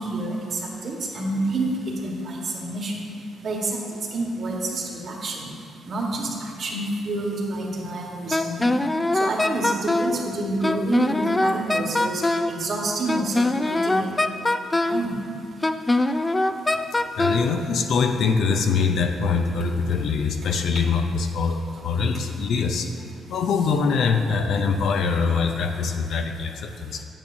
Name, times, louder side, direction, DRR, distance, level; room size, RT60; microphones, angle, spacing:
voice 1, 0.0-2.9 3.4-3.8 4.1-5.5 5.9-8.7 9.1-12.2 12.5-14.1 14.8-15.2, right 2 dB, 50° right, -1 dB, 1.4 m, -28 dB
Wind instrument woodwind instrument, 8.3-10.2 10.6-12.6 13.1-15.1 15.6-17.5, left 2 dB, 20° left, 0.3 m, -22 dB
voice 2, 17.2-22.9 23.3-27.0, left 5 dB, 70° left, 5 dB, 0.6 m, -23 dB
8.9 x 8.7 x 2.7 m, 2.4 s
cardioid pair, 90°, 0 cm